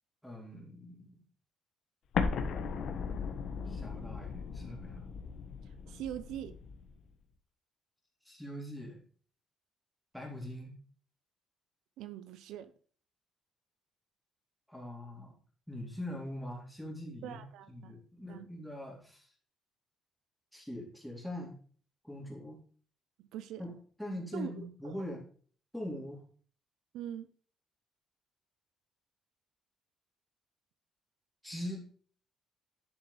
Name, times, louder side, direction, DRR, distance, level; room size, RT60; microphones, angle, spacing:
voice 1, 0.2-1.2 3.7-5.0 8.3-9.0 10.1-10.8 14.7-15.3 15.7-17.4 17.7-19.3 20.5-21.6 22.0-22.6 23.6-25.3 25.7-26.2 31.4-31.8, left 1 dB, ahead, 3.3 m, -42 dB
Explosion, 2.1-6.9, left 5 dB, 60° left, 1.3 m, -37 dB
voice 2, 5.9-6.5 12.0-12.7 17.2-17.9 18.3-18.5 23.2-23.7 24.3-24.5 24.8-25.1 26.9-27.3, right 11 dB, 85° right, 0.8 m, -42 dB
10.5 x 7.2 x 3.4 m
cardioid pair, 135°, 0 cm